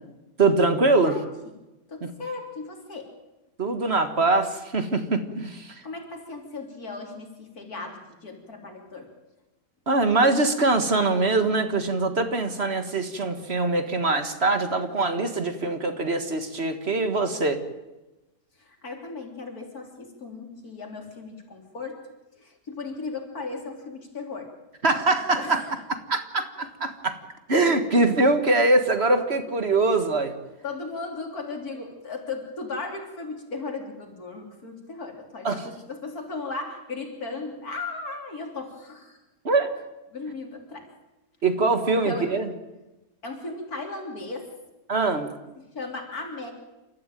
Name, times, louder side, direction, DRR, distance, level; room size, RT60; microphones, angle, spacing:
voice 1, 0.4-1.1 2.0-2.1 3.6-5.8 9.9-17.6 24.8-25.6 26.1-27.2 27.5-30.3 35.4-35.7 39.5-39.7 41.4-42.5 44.9-45.3, right 3 dB, 45° right, 8 dB, 1.9 m, -23 dB
voice 2, 1.0-1.5 1.9-3.1 5.8-9.1 18.6-22.0 22.4-24.5 25.4-25.7 30.6-35.6 35.9-39.2 40.1-40.9 41.9-42.3 43.2-44.5 45.7-46.5, left 3 dB, 85° left, 2 dB, 3.9 m, -36 dB
28.5 x 13.5 x 9.1 m, 1.1 s
omnidirectional pair, 1.5 m